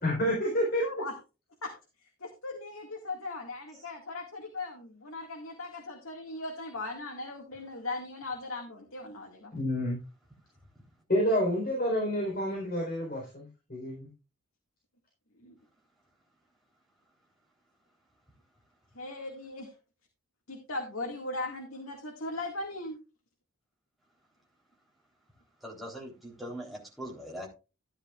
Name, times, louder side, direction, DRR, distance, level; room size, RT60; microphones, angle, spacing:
voice 1, 0.0-0.8 9.5-10.0 11.1-14.1, equal, 45° left, 4.1 m, -29 dB
voice 2, 0.8-1.1 1.6-1.7 2.2-9.5 15.4-15.5 19.0-19.7 20.5-23.0, left 2 dB, 75° left, 2.1 m, -38 dB
voice 3, 25.6-27.5, equal, ahead, 3.7 m, -41 dB
13.5 x 10.0 x 2.5 m
head